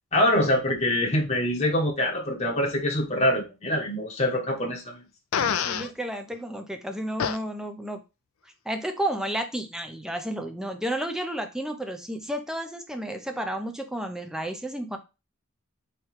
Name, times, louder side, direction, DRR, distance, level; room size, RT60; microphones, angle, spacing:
voice 1, 0.1-5.0, left 1 dB, 30° left, -1 dB, 0.9 m, -24 dB
Fart, 5.3-5.9 7.2-7.4, left 7 dB, 80° left, 0.4 m, -26 dB
voice 2, 5.6-8.0 8.6-15.0, right 1 dB, 5° right, 6 dB, 0.6 m, -32 dB
3.2 x 3.1 x 4.7 m, 0.28 s
head